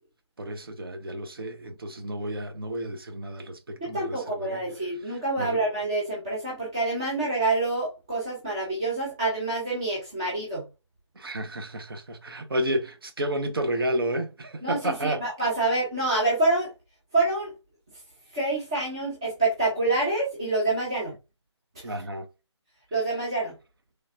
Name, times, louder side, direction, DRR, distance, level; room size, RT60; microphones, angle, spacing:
voice 1, 0.4-4.7 5.1-5.6 11.2-15.2 21.8-22.3, right 1 dB, 50° right, 0.8 m, -31 dB
voice 2, 3.8-10.7 14.6-16.7 17.1-17.5 18.3-21.2 21.7-21.8 22.9-23.6, right 2 dB, 10° right, 0.5 m, -27 dB
3.7 x 3.3 x 2.5 m
figure-of-eight pair, 165°, 15 cm